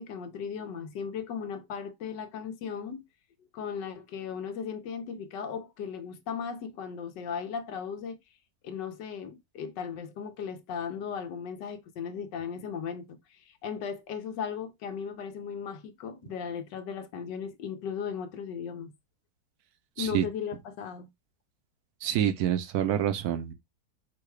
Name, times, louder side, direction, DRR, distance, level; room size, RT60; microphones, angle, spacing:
voice 1, 0.0-3.0 3.5-8.2 8.6-18.9 20.0-21.1, left 7 dB, 85° left, 1.4 m, -37 dB
voice 2, 22.0-23.5, right 10 dB, 70° right, 1.1 m, -27 dB
4.8 x 2.3 x 4.7 m
omnidirectional pair, 1.8 m